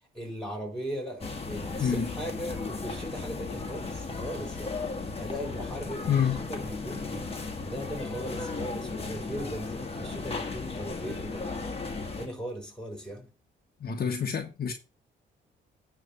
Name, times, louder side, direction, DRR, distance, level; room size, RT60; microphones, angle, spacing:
voice 1, 0.0-13.4, equal, 5° left, 4.2 m, -39 dB
sound 1, 1.2-12.3, left 3 dB, 30° left, 1.8 m, -35 dB
voice 2, 1.8-2.1 6.0-6.5 13.8-14.7, left 7 dB, 50° left, 1.5 m, -27 dB
9.8 x 3.5 x 6.8 m
cardioid pair, 90°, 20 cm